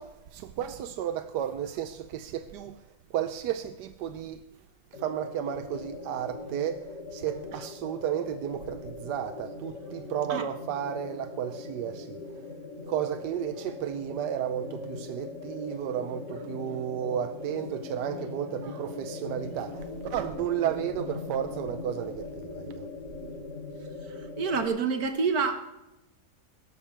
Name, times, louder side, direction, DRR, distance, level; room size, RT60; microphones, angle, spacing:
voice 1, 0.0-2.8 3.1-4.4 4.9-12.2 12.9-22.9, right 10 dB, 90° right, 1.3 m, -33 dB
sound 1, 4.9-24.7, left 3 dB, 85° left, 2.8 m, -40 dB
voice 2, 24.4-25.6, right 5 dB, 65° right, 1.8 m, -27 dB
16.0 x 13.5 x 3.4 m
omnidirectional pair, 1.8 m